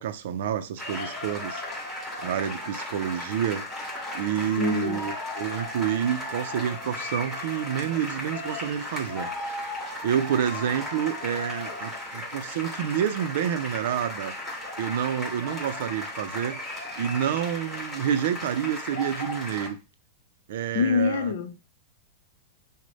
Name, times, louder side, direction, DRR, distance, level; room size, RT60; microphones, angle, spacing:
voice 1, 0.0-1.6 2.2-3.7 4.1-9.3 10.0-14.3 14.8-19.8 20.5-21.3, right 9 dB, 70° right, 0.4 m, -28 dB
sound 1, 0.8-19.7, left 1 dB, 5° left, 2.0 m, -35 dB
voice 2, 4.6-5.0 20.7-21.6, left 6 dB, 80° left, 0.6 m, -25 dB
6.3 x 2.1 x 4.0 m
supercardioid pair, 140°, 0 cm